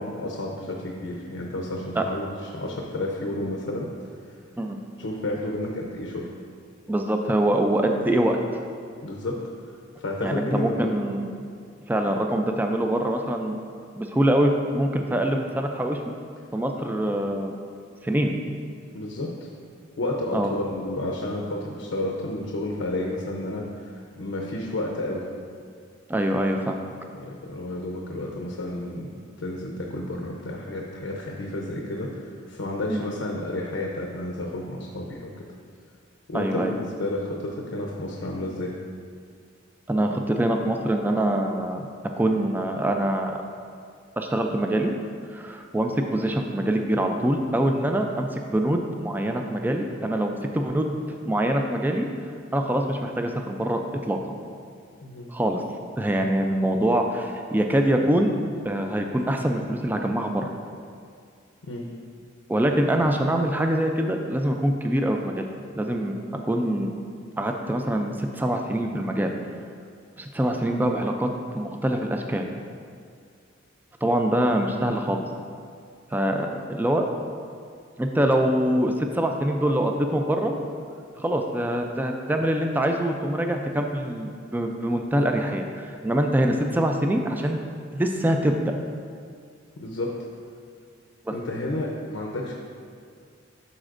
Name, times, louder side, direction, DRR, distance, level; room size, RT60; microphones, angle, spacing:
voice 1, 0.0-3.9 5.0-6.3 9.0-9.4 10.0-10.9 18.9-19.3 20.0-25.2 27.2-29.1 29.4-35.4 36.3-38.7 55.0-55.3 61.6-61.9 89.8-90.1 91.3-92.5, left 1 dB, 85° left, -1 dB, 0.7 m, -31 dB
voice 2, 6.9-8.4 10.2-11.3 11.9-13.6 14.0-16.0 16.5-17.6 18.0-18.3 20.3-20.5 26.1-26.8 32.9-33.0 36.3-36.7 39.9-41.9 42.2-43.4 44.2-44.9 45.3-51.0 51.3-52.1 52.5-53.8 54.1-54.2 55.3-55.6 56.0-58.3 58.6-60.5 62.5-65.5 65.7-66.9 67.4-69.3 70.2-72.5 74.0-75.2 76.1-77.1 78.0-80.5 81.2-87.6 87.9-88.7 91.3-91.4, right 1 dB, 10° right, 3 dB, 0.3 m, -24 dB
11.0 x 4.2 x 2.5 m, 2.2 s
head